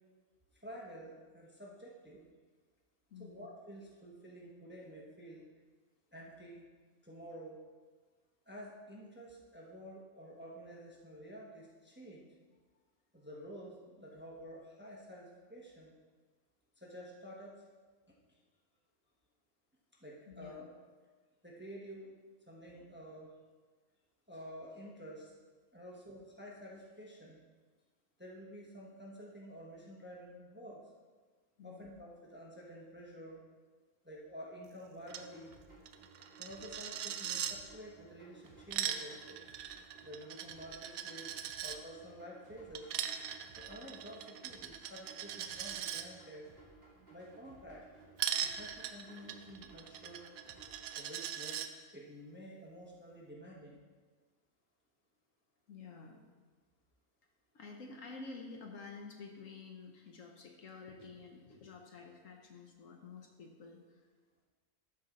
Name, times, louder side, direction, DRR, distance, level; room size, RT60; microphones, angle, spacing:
voice 1, 0.6-2.3 3.2-5.4 6.1-6.6 7.0-7.6 8.5-12.3 13.1-15.9 16.8-17.6 18.3-18.4 20.0-20.7 21.4-22.1 22.5-23.3 24.3-25.3 25.7-27.4 28.2-30.8 31.6-33.4 34.0-35.6 36.4-39.4 40.0-41.3 41.6-42.9 43.6-46.4 47.1-47.8 48.4-50.2 50.9-53.9, equal, 10° right, -3 dB, 1.0 m, -50 dB
voice 2, 3.1-3.5 20.3-20.6 31.6-31.9 55.7-56.2 57.5-64.0, left 4 dB, 65° left, 2 dB, 1.2 m, -50 dB
sound 1, 34.9-50.9, right 3 dB, 40° right, 2.6 m, -59 dB
Coin (dropping), 35.1-35.3 35.5-35.6 35.9-37.5 38.5-41.8 42.7-46.0 48.2-51.7, right 9 dB, 75° right, 1.0 m, -40 dB
12.5 x 4.8 x 3.8 m, 1.4 s
omnidirectional pair, 1.6 m